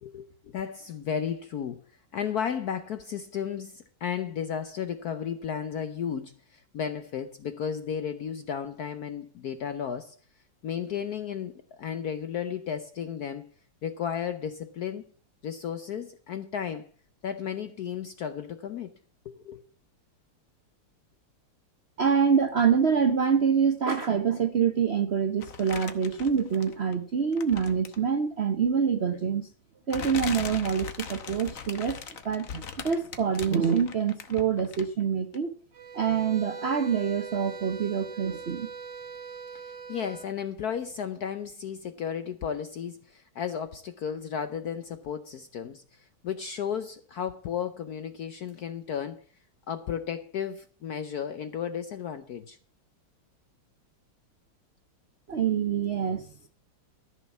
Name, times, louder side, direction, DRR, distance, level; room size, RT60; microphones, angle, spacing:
voice 1, 0.0-1.8 2.1-10.2 10.6-13.5 13.8-15.0 15.4-16.9 17.2-18.9 19.2-19.6 39.5-49.2 49.7-52.6, left 8 dB, 70° left, 0.9 m, -34 dB
voice 2, 22.0-29.5 29.9-32.0 32.2-35.5 35.9-38.7 55.3-56.3, right 7 dB, 90° right, 0.5 m, -26 dB
sound 1, 25.4-26.9 27.3-28.1 29.1-29.2 29.9-35.0 35.3-35.4, left 7 dB, 45° left, 1.2 m, -39 dB
sound 2, 35.7-40.3, right 5 dB, 60° right, 1.9 m, -41 dB
14.0 x 6.3 x 7.1 m
omnidirectional pair, 2.4 m